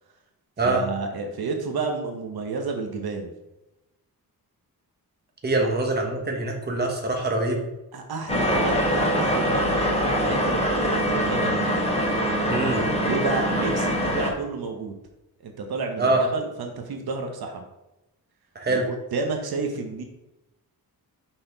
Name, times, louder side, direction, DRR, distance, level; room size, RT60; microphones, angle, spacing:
voice 1, 0.6-3.3 7.9-11.7 13.0-14.9 15.4-17.7 18.7-20.0, right 4 dB, 75° right, 3 dB, 0.9 m, -31 dB
voice 2, 5.4-7.6 12.5-12.8 16.0-16.2 18.5-18.9, right 2 dB, 25° right, 1 dB, 1.1 m, -24 dB
sound 1, 8.3-14.3, equal, 15° left, 1.0 m, -23 dB
5.9 x 4.2 x 3.9 m, 0.95 s
wide cardioid pair, 140°, 37 cm